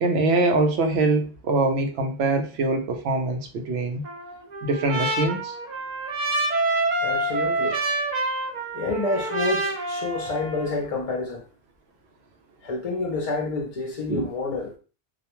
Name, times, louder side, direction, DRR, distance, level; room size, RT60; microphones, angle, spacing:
voice 1, 0.0-4.0 4.6-5.6 14.1-14.2, right 2 dB, 85° right, 0.8 m, -23 dB
Trumpet, 4.0-10.8, right 2 dB, 50° right, 0.6 m, -27 dB
voice 2, 7.0-7.8 8.7-11.4 12.6-14.7, left 3 dB, 45° left, 0.5 m, -28 dB
2.3 x 2.1 x 2.9 m
omnidirectional pair, 1.1 m